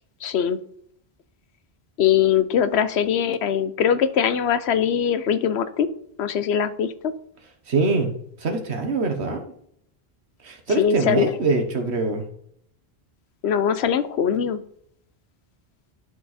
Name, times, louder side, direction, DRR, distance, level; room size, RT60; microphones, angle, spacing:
voice 1, 0.2-0.6 2.0-5.9 6.2-7.1 10.8-11.2 13.4-14.6, left 8 dB, 85° left, 13 dB, 1.0 m, -21 dB
voice 2, 7.7-8.1 8.4-9.5 10.4-12.2, right 3 dB, 85° right, 5 dB, 1.5 m, -23 dB
11.5 x 4.5 x 4.2 m, 0.69 s
omnidirectional pair, 1.1 m